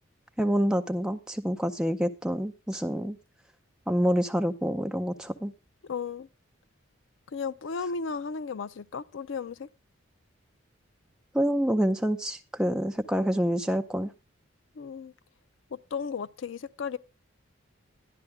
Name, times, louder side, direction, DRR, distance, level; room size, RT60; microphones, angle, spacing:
voice 1, 0.4-3.2 3.9-5.5 11.3-14.1, equal, 5° right, 0.5 m, -27 dB
voice 2, 5.8-6.3 7.3-9.7 14.8-15.1 15.7-17.0, left 5 dB, 65° left, 0.4 m, -34 dB
12.0 x 9.9 x 3.5 m
head